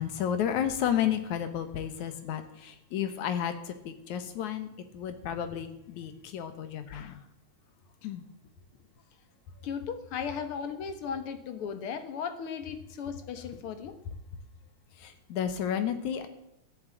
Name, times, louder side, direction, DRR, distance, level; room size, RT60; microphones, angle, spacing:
voice 1, 0.0-7.2 8.0-8.2 15.0-16.3, left 9 dB, 80° left, 9 dB, 2.6 m, -32 dB
voice 2, 6.9-7.2 9.6-14.0, left 7 dB, 55° left, 9 dB, 1.8 m, -36 dB
13.5 x 7.4 x 9.1 m, 0.83 s
omnidirectional pair, 3.3 m